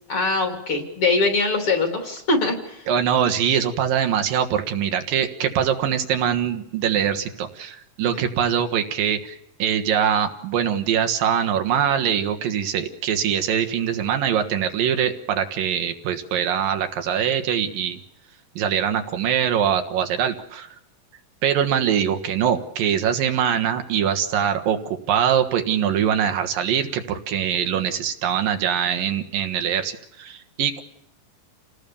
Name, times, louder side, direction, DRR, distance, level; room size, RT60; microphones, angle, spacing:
voice 1, 0.1-2.8 8.1-8.2, left 3 dB, 40° left, 5 dB, 3.8 m, -22 dB
voice 2, 2.9-18.0 18.6-20.7 21.4-30.8, right 8 dB, 75° right, 6 dB, 3.3 m, -23 dB
28.5 x 18.5 x 7.1 m, 0.77 s
omnidirectional pair, 4.0 m